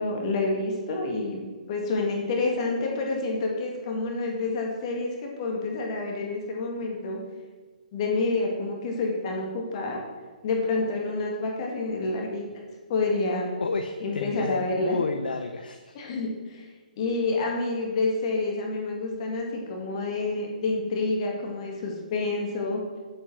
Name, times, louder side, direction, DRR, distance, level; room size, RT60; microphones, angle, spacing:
voice 1, 0.0-1.4 1.7-7.2 7.9-10.0 10.4-12.4 12.9-13.5 14.0-15.0 15.9-16.7 17.0-22.8, left 3 dB, 40° left, 0 dB, 2.0 m, -28 dB
voice 2, 13.6-16.0, left 4 dB, 85° left, 6 dB, 0.8 m, -30 dB
8.0 x 7.8 x 6.2 m, 1.4 s
hypercardioid pair, 155°, 5 cm